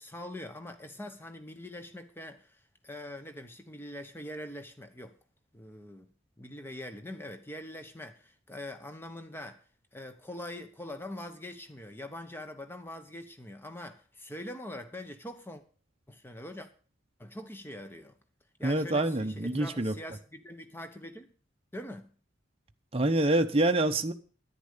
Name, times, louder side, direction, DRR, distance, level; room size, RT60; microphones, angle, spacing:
voice 1, 0.0-5.1 5.5-6.1 6.4-9.6 9.9-15.6 16.1-16.7 17.2-18.2 18.6-21.3 21.7-22.1, left 1 dB, 10° left, 1.0 m, -43 dB
voice 2, 18.6-19.9 22.9-24.1, right 2 dB, 30° right, 0.7 m, -26 dB
10.0 x 9.8 x 6.7 m
head